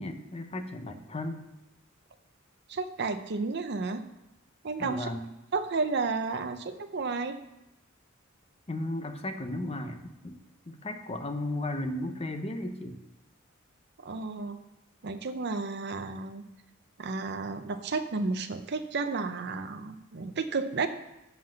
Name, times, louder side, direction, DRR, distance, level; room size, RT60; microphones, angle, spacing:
voice 1, 0.0-1.4 4.8-5.2 8.7-10.4 10.7-13.0, left 1 dB, 30° left, 7 dB, 0.8 m, -35 dB
voice 2, 2.7-4.0 4.6-5.1 5.5-7.4 14.0-14.6 15.0-16.4 17.0-20.9, right 4 dB, 55° right, 7 dB, 0.6 m, -32 dB
7.7 x 5.6 x 7.6 m, 0.96 s
head